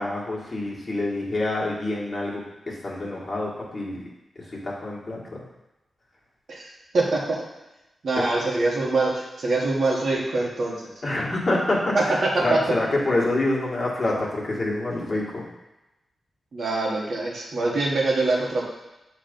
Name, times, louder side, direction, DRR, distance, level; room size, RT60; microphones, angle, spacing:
voice 1, 0.0-4.0 4.6-5.2 8.1-8.3 11.0-12.1 12.4-15.4, left 2 dB, 35° left, -5 dB, 1.7 m, -26 dB
voice 2, 6.9-7.4 8.0-10.9 11.9-12.6 16.5-18.7, right 2 dB, 55° right, -3 dB, 1.4 m, -24 dB
7.3 x 3.4 x 5.2 m, 0.99 s
wide cardioid pair, 120°, 0 cm